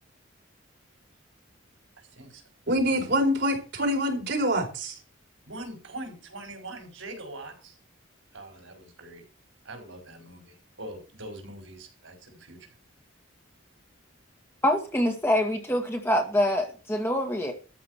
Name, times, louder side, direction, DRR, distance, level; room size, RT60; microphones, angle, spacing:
voice 1, 2.0-2.4 2.9-3.0 5.4-7.8 8.3-9.2 9.6-12.6, right 1 dB, 80° right, 5.4 m, -43 dB
voice 2, 2.7-4.9, equal, 55° right, 4.4 m, -25 dB
voice 3, 14.6-17.5, left 1 dB, 10° left, 2.0 m, -25 dB
13.5 x 5.6 x 8.1 m
head